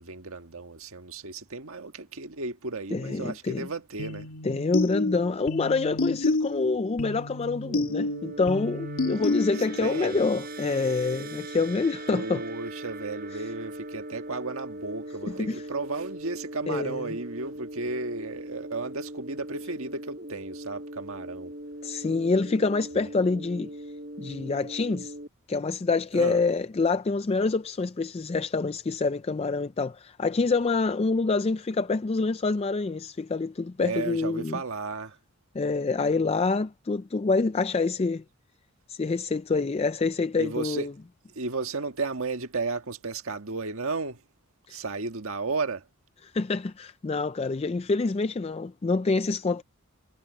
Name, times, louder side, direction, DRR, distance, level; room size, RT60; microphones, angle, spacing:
voice 1, 0.0-4.3 9.8-10.2 12.1-21.5 23.0-23.1 26.1-26.4 33.8-35.2 40.4-40.9 41.3-44.2 44.7-45.8, right 3 dB, 75° right, 1.5 m, -34 dB
voice 2, 2.9-3.7 4.4-12.4 13.3-13.4 15.2-15.6 16.7-17.1 21.8-23.7 24.2-25.1 25.5-34.6 35.5-38.2 38.9-40.9 44.7-44.8 46.2-49.6, left 3 dB, 25° left, 0.3 m, -26 dB
sound 1, 4.0-10.0, left 2 dB, 85° left, 1.8 m, -30 dB
sound 2, 7.6-25.3, right 1 dB, 40° right, 6.9 m, -40 dB
head